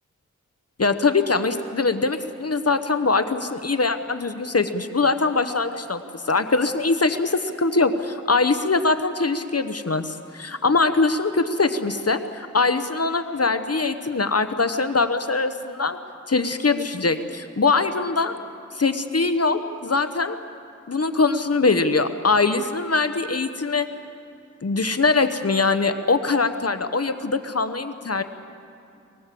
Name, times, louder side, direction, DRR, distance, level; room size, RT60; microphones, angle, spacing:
voice 1, 0.8-16.0 16.3-18.3 18.7-20.4 20.9-23.9 24.6-28.2, left 3 dB, 50° left, 9 dB, 1.0 m, -22 dB
23.5 x 20.5 x 7.7 m, 2.6 s
wide cardioid pair, 45°, 31 cm